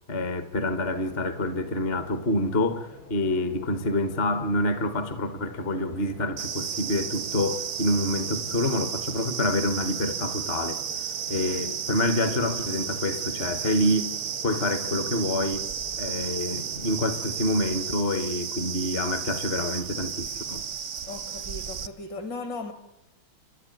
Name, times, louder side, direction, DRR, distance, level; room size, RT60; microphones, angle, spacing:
voice 1, 0.1-10.8 11.3-14.1 14.4-15.7 16.0-20.6, left 1 dB, 35° left, 1.3 m, -27 dB
sound 1, 0.8-18.0, left 2 dB, 90° left, 6.4 m, -48 dB
sound 2, 6.4-21.9, right 8 dB, 55° right, 0.8 m, -33 dB
voice 2, 21.1-22.7, left 3 dB, 55° left, 3.1 m, -37 dB
29.5 x 11.5 x 9.1 m
omnidirectional pair, 2.3 m